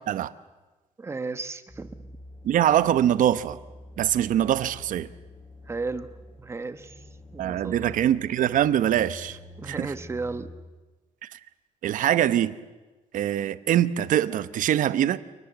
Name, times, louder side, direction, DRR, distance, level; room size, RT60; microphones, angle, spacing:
voice 1, 1.0-2.0 5.7-6.1 6.4-7.0 7.3-7.9 9.6-10.5, right 3 dB, 20° right, 11 dB, 1.1 m, -34 dB
sound 1, 1.7-10.5, left 1 dB, 10° left, 5.8 m, -46 dB
voice 2, 2.4-3.6 4.0-5.1 7.4-9.4 9.7-9.9 11.2-11.4 11.8-12.6 13.1-15.2, right 11 dB, 80° right, 15 dB, 0.9 m, -23 dB
29.0 x 19.5 x 8.1 m, 1.2 s
wide cardioid pair, 175°, 13 cm